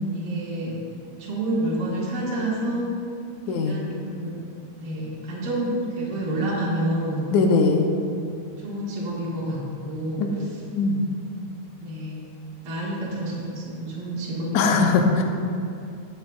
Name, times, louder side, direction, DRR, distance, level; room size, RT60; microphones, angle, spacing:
voice 1, 0.1-0.7 1.2-2.9 3.4-4.4 4.8-7.2 8.6-10.2 11.8-12.3 12.6-14.8 15.1-15.2, right 1 dB, 40° right, -7 dB, 1.9 m, -28 dB
voice 2, 3.5-3.8 7.3-7.9 10.2-10.3 10.7-11.1 14.5-15.2, left 4 dB, 80° left, 3 dB, 2.0 m, -20 dB
20.0 x 6.9 x 2.4 m, 2.5 s
omnidirectional pair, 3.5 m